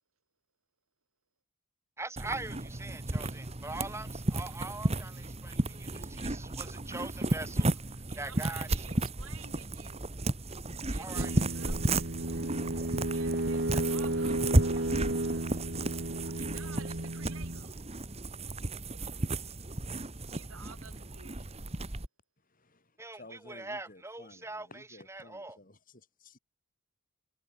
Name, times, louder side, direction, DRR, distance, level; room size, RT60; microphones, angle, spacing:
voice 1, 2.0-8.7 11.0-11.3 23.0-25.6, right 2 dB, 15° right, 2.0 m, -42 dB
sound 1, 2.2-22.1, right 2 dB, 30° right, 1.6 m, -33 dB
voice 2, 8.1-10.0 10.9-11.8 13.1-15.1 16.3-17.7 20.3-21.5, right 5 dB, 80° right, 4.6 m, -52 dB
sound 2, 11.1-17.7, right 1 dB, 55° right, 1.8 m, -33 dB
voice 3, 23.2-25.8 26.2-26.4, left 2 dB, 40° left, 4.6 m, -53 dB
head